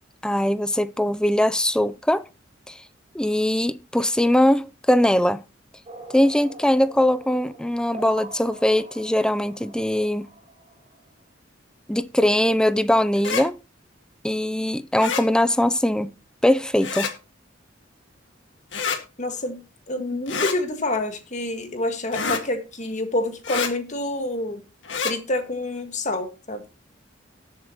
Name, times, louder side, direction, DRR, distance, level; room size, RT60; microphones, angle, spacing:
voice 1, 0.2-2.2 2.7-2.8 3.1-5.4 6.1-10.3 11.9-13.6 14.2-16.1 16.4-17.1, left 1 dB, 5° left, 0.4 m, -21 dB
sound 1, 5.9-11.2, right 2 dB, 35° right, 4.5 m, -43 dB
sound 2, 13.2-13.4 15.0-15.2 16.8-17.1 18.7-19.0 20.3-20.6 22.1-22.4 23.4-23.7 24.8-25.1, left 5 dB, 85° left, 1.8 m, -27 dB
voice 2, 19.2-19.6 19.9-24.6 25.0-26.6, left 2 dB, 40° left, 1.7 m, -27 dB
18.5 x 7.4 x 2.9 m
head